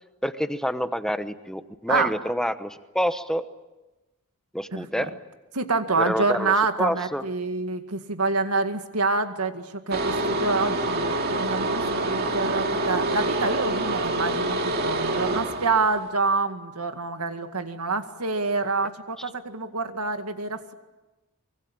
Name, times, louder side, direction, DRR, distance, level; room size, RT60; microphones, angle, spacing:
voice 1, 0.2-3.4 4.5-5.1 6.0-7.2 13.5-13.6, equal, 5° left, 10 dB, 1.0 m, -28 dB
voice 2, 4.7-5.1 5.5-20.7, right 3 dB, 90° right, 7 dB, 2.0 m, -27 dB
sound 1, 9.9-16.1, right 2 dB, 45° right, 2.3 m, -26 dB
25.0 x 23.0 x 8.8 m, 1.1 s
head